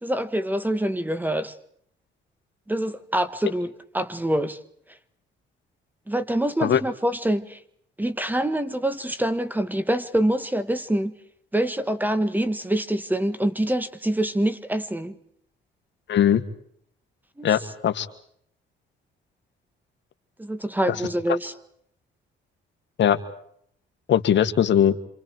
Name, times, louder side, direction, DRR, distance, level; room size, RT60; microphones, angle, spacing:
voice 1, 0.0-1.5 2.7-4.6 6.1-7.6 8.0-11.1 11.5-15.2 17.4-17.5 20.4-21.5, right 1 dB, 10° right, 1.7 m, -25 dB
voice 2, 16.1-16.4 17.4-18.1 20.9-21.0 23.0-23.2 24.1-25.0, left 9 dB, 65° left, 1.8 m, -20 dB
28.0 x 27.0 x 4.7 m
cardioid pair, 90°, 20 cm